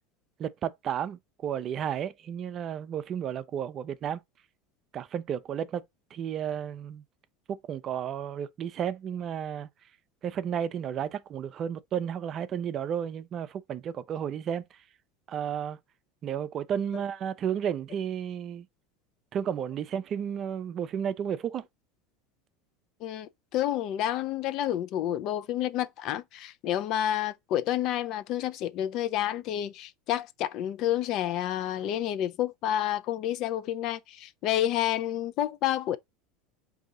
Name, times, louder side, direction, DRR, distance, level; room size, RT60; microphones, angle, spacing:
voice 1, 0.4-4.2 4.9-5.8 6.1-7.0 7.5-9.7 10.2-14.6 15.3-15.8 16.2-18.7 19.3-21.7, right 9 dB, 45° right, 0.4 m, -32 dB
voice 2, 23.0-36.0, left 12 dB, 55° left, 0.4 m, -29 dB
3.7 x 2.7 x 3.7 m
hypercardioid pair, 90°, 0 cm